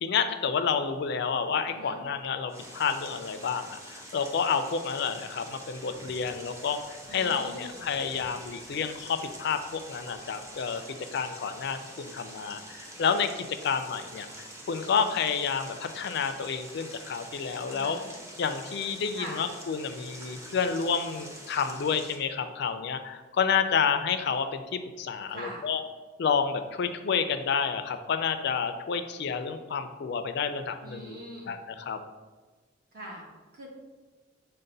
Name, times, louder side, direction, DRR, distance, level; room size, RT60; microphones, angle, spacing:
voice 1, 0.0-18.0 18.4-25.8 26.2-31.2 31.5-32.0, left 6 dB, 60° left, 9 dB, 0.4 m, -30 dB
voice 2, 1.7-2.0 7.1-7.8 17.7-18.1 19.1-19.4 25.3-25.7 30.8-31.5 32.9-33.2 33.5-33.7, right 1 dB, 50° right, -1 dB, 1.1 m, -42 dB
sound 1, 2.5-22.2, right 1 dB, 15° right, 0.6 m, -46 dB
6.4 x 2.1 x 3.9 m, 1.3 s
head